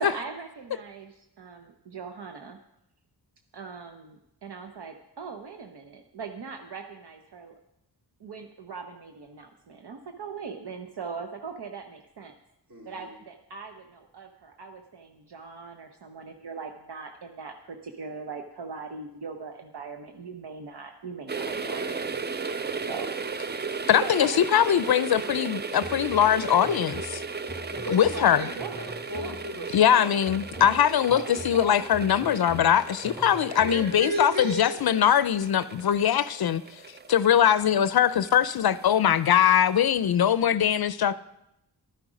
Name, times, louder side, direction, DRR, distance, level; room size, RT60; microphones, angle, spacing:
voice 1, 0.0-2.6 3.5-7.5 8.2-12.3 12.8-22.2 22.9-23.2 24.0-24.7 25.1-25.3 28.0-28.3 28.6-28.8 29.1-29.4 30.6-30.8 31.1-31.9, right 5 dB, 70° right, 0.9 m, -40 dB
voice 2, 12.7-13.2 21.7-22.0 22.4-22.7 23.6-23.7 27.7-28.5 28.8-30.1 33.5-34.8, equal, 50° right, 3.3 m, -35 dB
sound 1, 21.3-39.9 40.2-40.3, right 5 dB, 25° right, 0.5 m, -36 dB
voice 3, 23.9-27.2 27.9-28.5 29.7-36.6 37.1-41.1, left 9 dB, 60° left, 0.5 m, -22 dB
sound 2, 25.8-29.7 30.3-34.1, equal, 10° right, 1.5 m, -43 dB
12.0 x 10.0 x 5.0 m
wide cardioid pair, 70°, 42 cm